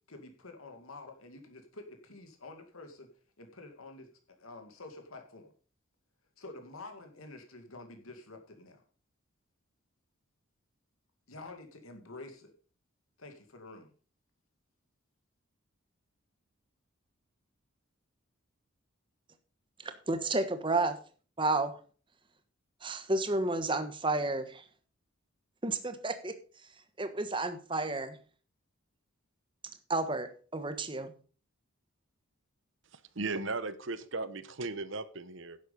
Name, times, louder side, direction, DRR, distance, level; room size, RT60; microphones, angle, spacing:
voice 1, 0.1-3.1 3.4-4.1 4.4-5.5 6.4-8.8 11.3-12.5 13.2-13.9, left 2 dB, 80° left, 5 dB, 2.2 m, -48 dB
voice 2, 19.8-21.0 21.4-21.8 22.8-24.6 25.6-26.3 27.0-28.2 29.9-31.1, right 2 dB, 25° right, 9 dB, 1.2 m, -31 dB
voice 3, 32.9-35.6, right 3 dB, 60° right, 13 dB, 0.9 m, -37 dB
11.0 x 8.0 x 5.2 m, 0.39 s
head